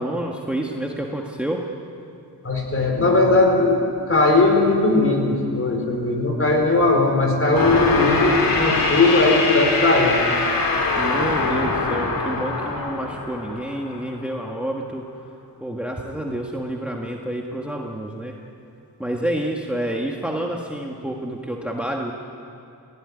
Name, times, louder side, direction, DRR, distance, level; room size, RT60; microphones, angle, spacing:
voice 1, 0.0-1.6 10.9-15.1 15.6-18.4 19.0-22.1, right 1 dB, 5° right, 0 dB, 1.6 m, -28 dB
voice 2, 2.4-10.2, left 2 dB, 35° left, 2 dB, 4.5 m, -18 dB
sound 1, 7.5-14.1, left 3 dB, 60° left, 3.1 m, -23 dB
28.5 x 17.0 x 9.9 m, 2.6 s
wide cardioid pair, 155°, 39 cm